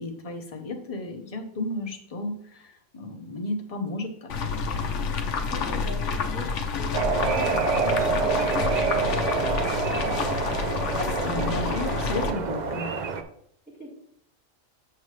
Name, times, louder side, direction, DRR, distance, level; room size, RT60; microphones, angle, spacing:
voice 1, 0.0-4.3 11.0-12.9, left 2 dB, 35° left, 4 dB, 0.7 m, -33 dB
sound 1, 4.3-12.3, left 5 dB, 65° left, 1.0 m, -29 dB
voice 2, 5.5-9.5 13.7-13.9, right 1 dB, 5° right, -4 dB, 2.0 m, -41 dB
sound 2, 6.9-13.2, right 5 dB, 60° right, 0.4 m, -27 dB
7.1 x 6.7 x 3.2 m, 0.69 s
omnidirectional pair, 1.4 m